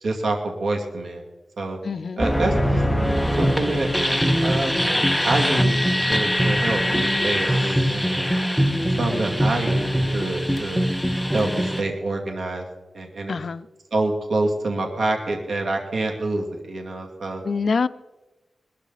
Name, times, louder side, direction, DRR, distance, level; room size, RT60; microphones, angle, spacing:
voice 1, 0.0-1.2 1.6-1.8 2.2-2.8 3.4-4.9 5.2-5.8 6.1-8.2 9.0-10.8 11.3-12.6 12.9-13.4 13.9-17.4, right 2 dB, 80° right, 2 dB, 2.4 m, -27 dB
voice 2, 1.8-2.3 13.3-13.7 17.4-17.9, left 5 dB, 65° left, 14 dB, 0.5 m, -25 dB
sound 1, 2.2-11.8, equal, 5° left, 1.0 m, -22 dB
20.0 x 13.5 x 4.1 m, 1.1 s
wide cardioid pair, 90°, 0 cm